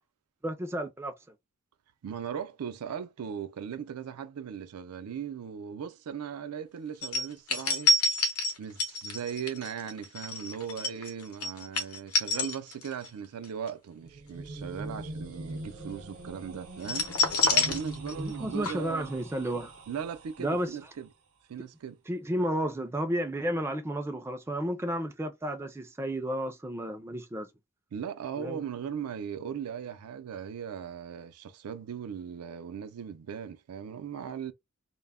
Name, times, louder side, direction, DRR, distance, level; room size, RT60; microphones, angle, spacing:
voice 1, 0.4-1.1 18.2-19.7 20.4-20.8 22.1-27.5 28.4-28.6, right 1 dB, 10° right, 0.3 m, -32 dB
voice 2, 2.0-7.9 8.6-17.1 17.5-19.1 19.9-21.1 21.5-22.0 27.9-34.5, right 7 dB, 85° right, 0.4 m, -38 dB
sound 1, 7.0-13.1 13.4-13.7 16.8-18.4 18.6-18.7, left 2 dB, 85° left, 0.7 m, -28 dB
sound 2, 13.9-20.9, right 2 dB, 70° right, 0.8 m, -43 dB
2.1 x 2.0 x 3.4 m
head